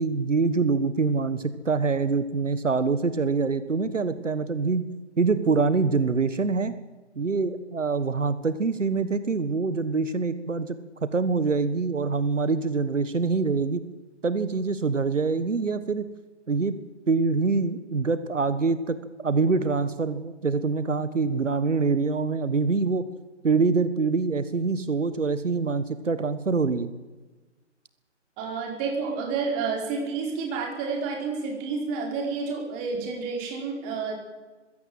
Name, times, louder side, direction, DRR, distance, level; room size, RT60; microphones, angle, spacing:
voice 1, 0.0-4.9 5.2-6.7 7.1-13.8 14.2-16.1 16.5-16.8 17.1-19.0 19.2-23.1 23.4-26.9, right 4 dB, 85° right, 13 dB, 1.6 m, -25 dB
voice 2, 28.4-34.1, right 4 dB, 20° right, 1 dB, 4.9 m, -30 dB
22.5 x 16.5 x 7.9 m, 1.2 s
figure-of-eight pair, 150°, 36 cm